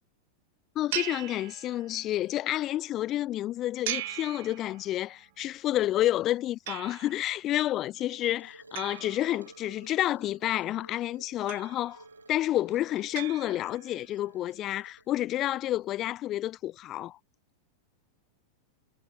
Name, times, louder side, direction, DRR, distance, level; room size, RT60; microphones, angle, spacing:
voice 1, 0.8-17.2, left 14 dB, 35° left, 0.5 m, -30 dB
sound 1, 0.9-2.1 3.8-5.1 6.7-7.4 8.7-9.9 11.5-12.2 13.1-14.0, right 18 dB, 50° right, 0.7 m, -39 dB
sound 2, 8.0-15.1, right 2 dB, 85° right, 1.2 m, -54 dB
figure-of-eight pair, 90°, 0 cm